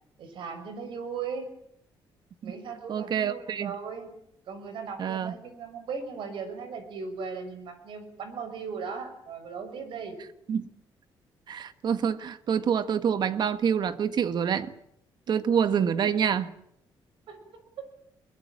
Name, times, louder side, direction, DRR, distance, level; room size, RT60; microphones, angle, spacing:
voice 1, 0.2-1.5 2.4-4.1 4.5-10.2 15.3-15.4 17.3-17.6, right 5 dB, 75° right, 9 dB, 6.3 m, -38 dB
voice 2, 2.9-3.7 5.0-5.3 10.5-10.7 11.5-14.7 15.3-16.5, right 7 dB, 55° right, 12 dB, 1.5 m, -26 dB
22.5 x 20.5 x 8.7 m, 0.74 s
cardioid pair, 115°, 9 cm